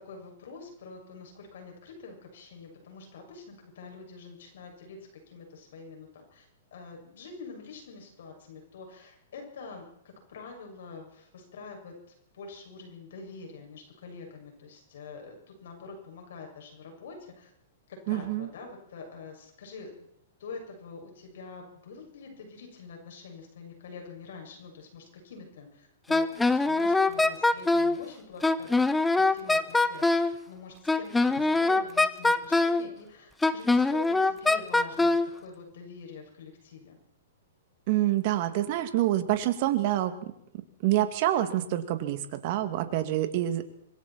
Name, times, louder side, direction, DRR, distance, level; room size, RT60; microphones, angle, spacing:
voice 1, 0.0-5.0 5.3-17.5 18.1-20.1 20.4-28.7 29.2-37.0, left 4 dB, 70° left, 3 dB, 7.0 m, -46 dB
voice 2, 18.1-18.5 37.9-40.3 40.8-43.6, right 13 dB, 50° right, 8 dB, 2.6 m, -27 dB
Wind instrument woodwind instrument, 26.1-28.0 28.4-30.3 30.9-32.8 33.4-35.3, left 2 dB, 10° left, 1.1 m, -23 dB
25.5 x 22.5 x 4.5 m, 0.73 s
hypercardioid pair, 125°, 0 cm